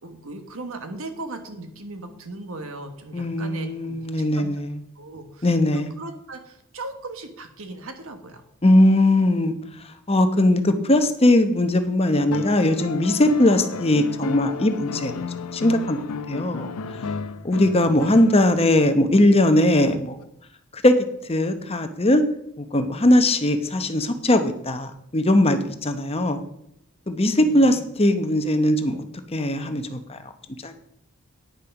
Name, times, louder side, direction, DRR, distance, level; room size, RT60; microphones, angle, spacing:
voice 1, 0.0-4.5 4.9-8.4 17.9-18.2 27.3-27.8, right 2 dB, 65° right, 7 dB, 1.3 m, -38 dB
voice 2, 3.1-4.8 5.4-5.9 8.6-9.6 9.8-15.1 15.5-16.7 17.4-20.2 20.7-20.9 21.2-22.2 22.6-26.4 27.1-29.0 29.3-30.3 30.6-30.8, left 1 dB, 25° left, 8 dB, 0.9 m, -20 dB
sound 1, 12.3-18.7 20.2-20.3, left 4 dB, 85° left, 0.6 m, -33 dB
9.6 x 6.8 x 5.9 m, 0.75 s
head